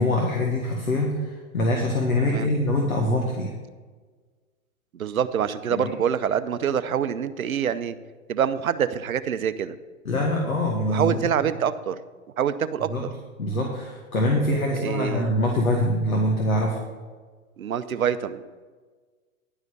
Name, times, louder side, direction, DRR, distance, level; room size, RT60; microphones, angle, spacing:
voice 1, 0.0-3.5 5.7-5.9 10.0-11.3 12.9-13.0 13.4-16.8, left 1 dB, 90° left, 0 dB, 1.7 m, -24 dB
voice 2, 4.9-8.0 8.3-9.8 10.9-12.0 12.4-12.9 14.7-15.3 17.6-18.4, right 8 dB, 85° right, 13 dB, 0.7 m, -25 dB
11.0 x 5.0 x 8.0 m, 1.4 s
hypercardioid pair, 115°, 41 cm